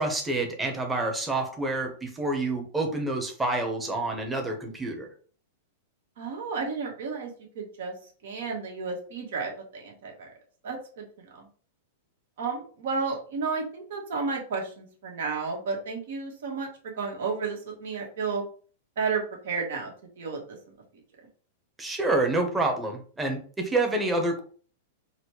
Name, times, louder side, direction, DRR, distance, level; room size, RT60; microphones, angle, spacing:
voice 1, 0.0-5.1 21.8-24.4, right 2 dB, 10° right, 3 dB, 0.9 m, -28 dB
voice 2, 6.2-7.9 8.2-10.3 10.6-11.4 12.4-18.4 19.0-19.9 20.2-20.4, right 4 dB, 70° right, 0 dB, 1.2 m, -32 dB
4.0 x 2.1 x 3.0 m, 0.43 s
hypercardioid pair, 130°, 0 cm